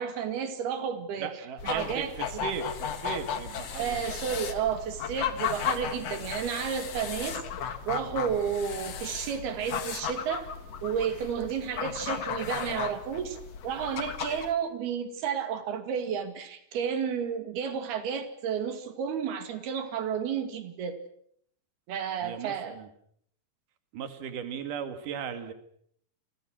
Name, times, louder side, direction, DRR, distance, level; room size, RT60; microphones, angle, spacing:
voice 1, 0.0-2.4 3.8-7.4 7.9-10.5 10.8-13.4 13.6-21.0 21.9-22.8, right 7 dB, 80° right, 8 dB, 4.3 m, -32 dB
voice 2, 1.2-4.2 22.2-22.9 23.9-25.5, right 7 dB, 60° right, 9 dB, 3.6 m, -37 dB
sound 1, 1.6-14.5, left 8 dB, 50° left, 2.3 m, -35 dB
29.0 x 25.0 x 6.3 m, 0.67 s
omnidirectional pair, 4.4 m